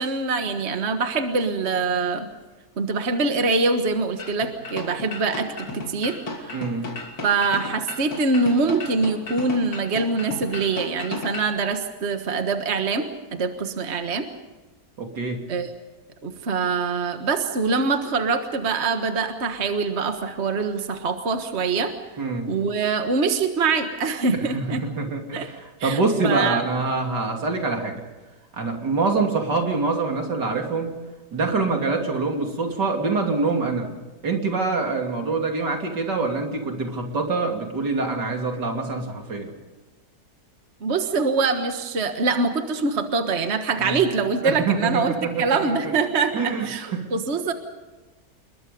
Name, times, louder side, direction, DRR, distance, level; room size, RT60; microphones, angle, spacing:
voice 1, 0.0-2.3 2.8-6.6 7.2-13.1 13.3-14.2 15.5-15.7 16.2-21.9 22.5-24.8 25.3-25.5 25.8-26.6 40.8-47.5, right 4 dB, 40° right, 6 dB, 1.7 m, -24 dB
sound 1, 4.2-11.6, left 2 dB, 85° left, 3.6 m, -35 dB
voice 2, 6.5-6.9 15.0-15.4 22.2-22.5 24.4-28.0 28.5-30.9 31.3-33.9 34.2-39.5 43.8-44.0 44.4-45.7 46.3-47.1, right 3 dB, 75° right, 3 dB, 3.6 m, -25 dB
28.0 x 22.0 x 5.3 m, 1.2 s
omnidirectional pair, 1.9 m